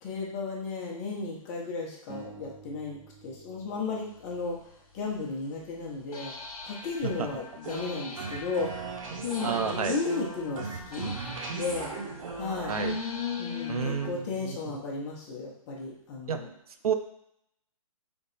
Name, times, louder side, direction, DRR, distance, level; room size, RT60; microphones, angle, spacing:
voice 1, 0.0-4.7 4.9-8.7 9.2-11.2 11.5-11.9 12.3-12.8 13.4-16.5, left 4 dB, 30° left, -2 dB, 1.0 m, -34 dB
sound 1, 2.1-5.3, right 6 dB, 10° right, 0.4 m, -51 dB
sound 2, 4.5-4.6 6.1-14.1, left 5 dB, 85° left, 1.1 m, -39 dB
Sounding Dumb, 7.6-12.9, right 4 dB, 65° right, 1.0 m, -37 dB
voice 2, 9.4-10.0 12.7-13.0 13.7-14.6 16.3-16.4 16.8-16.9, right 7 dB, 90° right, 8 dB, 0.5 m, -30 dB
3.4 x 3.2 x 4.1 m, 0.75 s
hypercardioid pair, 155°, 18 cm